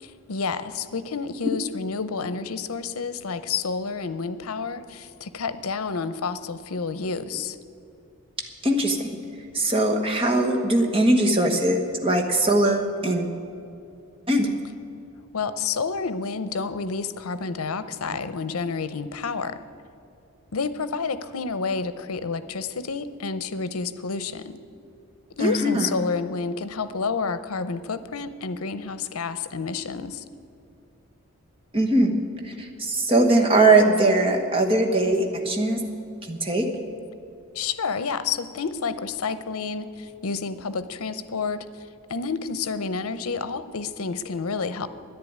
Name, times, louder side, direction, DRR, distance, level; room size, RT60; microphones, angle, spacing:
voice 1, 0.0-7.6 15.3-19.6 20.5-24.6 25.3-30.2 37.5-41.7 42.1-44.9, left 5 dB, 85° left, 13 dB, 0.7 m, -29 dB
voice 2, 8.6-9.1 9.5-13.3 14.3-14.5 25.4-25.9 31.7-32.1 32.4-35.8 36.3-36.6, right 2 dB, 25° right, 3 dB, 1.2 m, -21 dB
10.5 x 10.0 x 9.4 m, 2.5 s
head